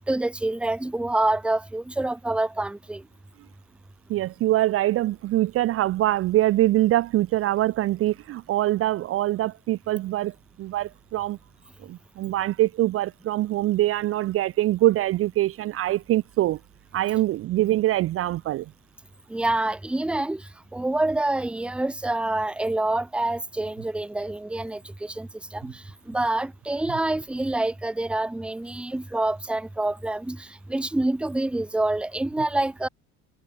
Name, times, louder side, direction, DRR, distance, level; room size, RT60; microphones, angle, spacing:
voice 1, 0.1-3.0 19.3-20.4 20.7-32.9, right 2 dB, 5° right, 0.8 m, -27 dB
voice 2, 4.1-11.4 11.8-16.6 16.9-18.7, right 15 dB, 40° right, 0.5 m, -24 dB
cardioid pair, 175°, 34 cm